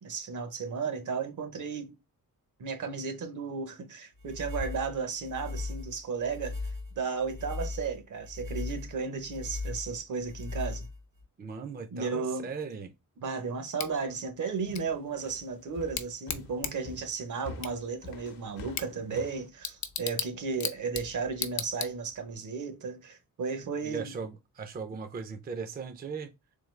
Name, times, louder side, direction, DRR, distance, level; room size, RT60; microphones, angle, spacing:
voice 1, 0.0-1.9 2.6-6.6 7.0-10.9 11.9-12.5 13.2-24.2, right 5 dB, 60° right, 0.8 m, -34 dB
sound 1, 4.2-11.2, left 3 dB, 80° right, 2.3 m, -38 dB
voice 2, 11.4-12.9 23.8-26.3, right 5 dB, 30° right, 0.4 m, -38 dB
Bicycle / Tick, 13.8-22.4, left 7 dB, 55° left, 0.6 m, -39 dB
sound 2, 14.7-19.5, left 3 dB, 80° left, 0.8 m, -46 dB
3.8 x 3.0 x 3.1 m
wide cardioid pair, 120°, 34 cm